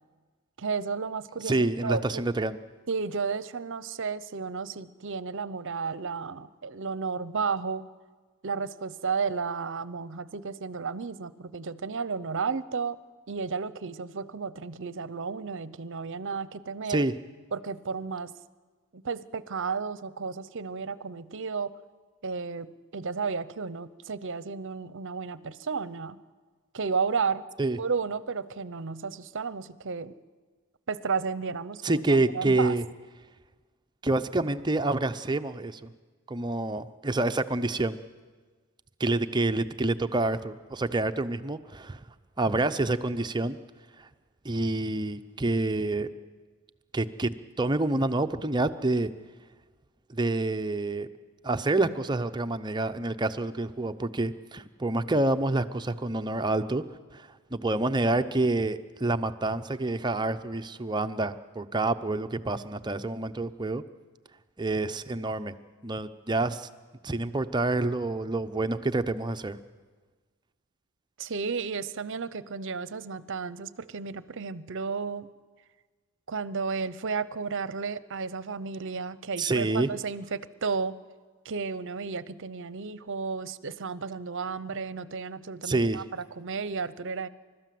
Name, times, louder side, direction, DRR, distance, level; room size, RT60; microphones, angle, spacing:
voice 1, 0.6-2.2 2.9-7.9 8.4-13.0 13.3-17.0 17.5-18.3 18.9-21.7 22.2-26.2 26.7-27.4 27.8-30.1 30.9-32.7 71.2-75.3 76.3-80.9 81.4-87.3, right 5 dB, 60° right, 16 dB, 0.7 m, -33 dB
voice 2, 1.4-2.6 16.9-17.1 27.6-27.8 31.8-32.8 34.0-35.8 36.3-38.0 39.0-42.0 42.4-43.6 44.4-46.1 46.9-49.1 50.1-51.1 51.4-56.8 57.1-63.8 64.6-65.5 65.8-66.7 67.0-69.6 79.4-79.9 85.6-86.0, right 2 dB, 20° right, 8 dB, 0.7 m, -27 dB
30.0 x 13.5 x 7.7 m, 1.4 s
head